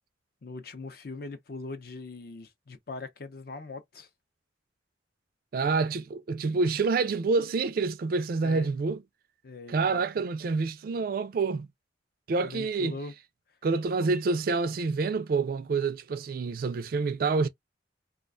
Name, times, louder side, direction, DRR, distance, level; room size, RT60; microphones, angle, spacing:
voice 1, 0.4-4.1 8.4-8.7 9.4-10.3 12.4-13.1, left 3 dB, 55° left, 0.6 m, -41 dB
voice 2, 5.5-9.0 9.7-11.7 12.3-12.9 13.6-17.5, right 4 dB, 50° right, 0.3 m, -27 dB
2.4 x 2.2 x 2.3 m
head